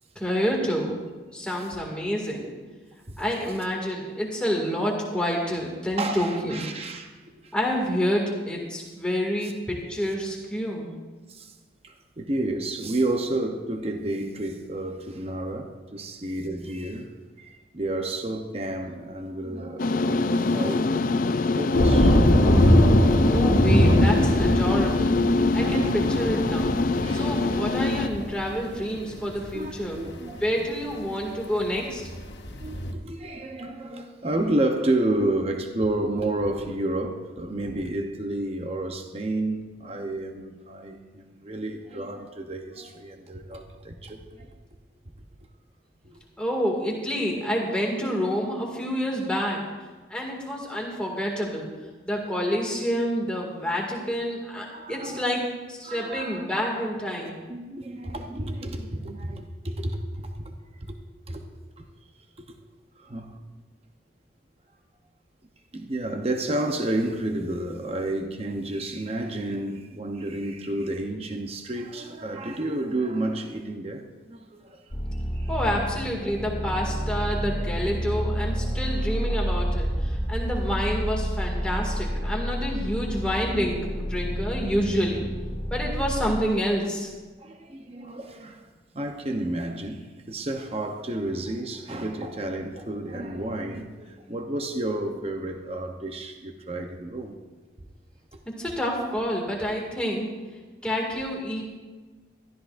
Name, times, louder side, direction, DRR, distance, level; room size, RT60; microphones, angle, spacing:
voice 1, 0.2-1.0 1.3-2.5 3.2-6.7 7.5-10.9 23.2-25.2 25.5-26.8 27.1-30.1 30.4-32.1 46.4-49.6 50.1-51.7 52.0-55.4 55.7-57.4 75.5-85.3 85.7-87.1 98.6-100.3 100.8-101.7, equal, 5° left, -2 dB, 2.2 m, -28 dB
voice 2, 6.0-7.5 9.4-9.5 11.3-11.5 11.8-17.1 17.4-21.1 21.6-22.2 22.5-22.9 25.6-26.0 26.5-27.6 29.5-30.4 32.5-44.5 46.0-46.2 54.7-55.3 55.8-56.5 57.2-60.5 60.8-61.0 61.3-61.5 61.8-61.9 62.4-62.6 63.0-63.4 65.7-75.1 75.3-75.5 80.7-80.8 87.4-88.7 88.9-97.4 98.3-98.4, right 1 dB, 35° right, 4 dB, 0.8 m, -31 dB
sound 1, 19.8-28.1, left 3 dB, 50° left, 0.4 m, -24 dB
sound 2, 21.7-30.5 31.6-31.7 32.0-32.9, equal, 90° left, 1.4 m, -22 dB
sound 3, 74.9-86.4, equal, 25° left, 1.2 m, -29 dB
20.5 x 14.0 x 2.6 m, 1.3 s
head